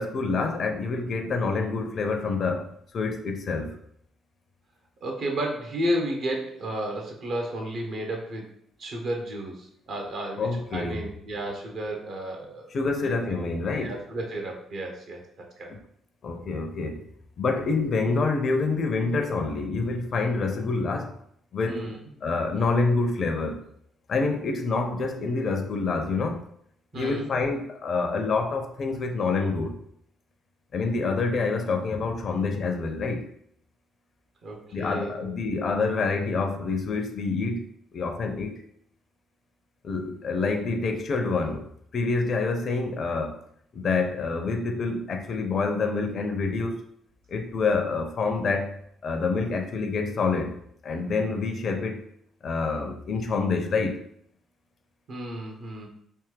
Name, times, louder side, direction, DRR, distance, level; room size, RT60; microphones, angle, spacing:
voice 1, 0.0-3.8 10.4-11.0 12.7-14.0 16.2-17.0 17.4-21.2 21.5-21.8 22.2-23.6 24.1-26.4 26.9-29.8 30.7-33.3 34.7-38.6 39.8-43.4 43.7-46.8 47.3-48.7 49.0-52.0 52.4-54.0, left 4 dB, 50° left, 0.5 m, -27 dB
voice 2, 5.0-8.5 8.8-12.7 13.0-13.1 13.8-15.7 21.7-22.0 26.9-27.3 34.4-35.3 55.1-55.9, right 1 dB, 55° right, 0.9 m, -32 dB
3.4 x 2.9 x 3.3 m
figure-of-eight pair, 45°, 0 cm